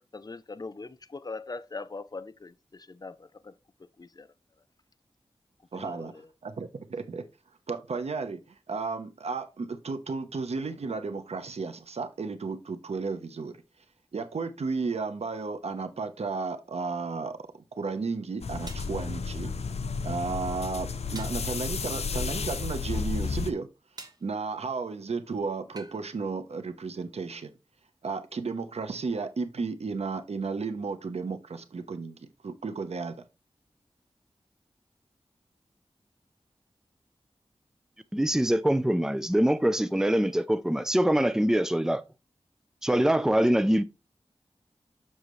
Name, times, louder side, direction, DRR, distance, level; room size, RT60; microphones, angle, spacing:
voice 1, 0.1-3.5 4.0-4.3 5.7-6.2, left 3 dB, 40° left, 0.6 m, -41 dB
voice 2, 5.7-7.2 7.7-13.6 14.1-17.4 17.8-19.5 20.0-23.7 24.2-27.5 28.0-33.2, right 4 dB, 85° right, 1.0 m, -33 dB
sound 1, 17.5-17.6 18.7-19.0 21.2-21.5 24.0-24.3 25.8-26.0, right 2 dB, 40° right, 1.2 m, -45 dB
sound 2, 18.4-23.5, left 5 dB, 90° left, 0.6 m, -32 dB
voice 3, 38.1-42.0 42.8-43.8, right 1 dB, 5° right, 0.6 m, -24 dB
7.3 x 6.3 x 3.2 m
wide cardioid pair, 75°, 10 cm